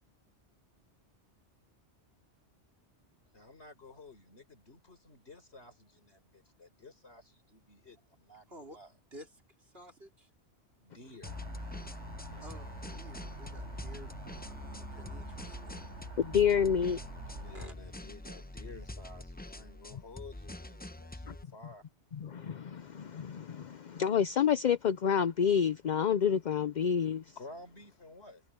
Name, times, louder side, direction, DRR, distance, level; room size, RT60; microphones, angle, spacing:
voice 1, 3.3-8.9 10.8-11.4 17.4-21.8 27.4-28.4, left 3 dB, 65° left, 4.5 m, -52 dB
voice 2, 8.5-8.8 9.1-10.3 12.4-15.8 17.5-17.7, right 1 dB, 60° right, 4.5 m, -53 dB
sound 1, 11.2-21.4, left 1 dB, 10° left, 0.7 m, -45 dB
sound 2, 11.2-17.7, right 2 dB, 85° right, 5.2 m, -46 dB
voice 3, 16.2-17.0 21.3-21.4 22.1-27.2, left 7 dB, 50° left, 0.6 m, -29 dB
omnidirectional pair, 1.2 m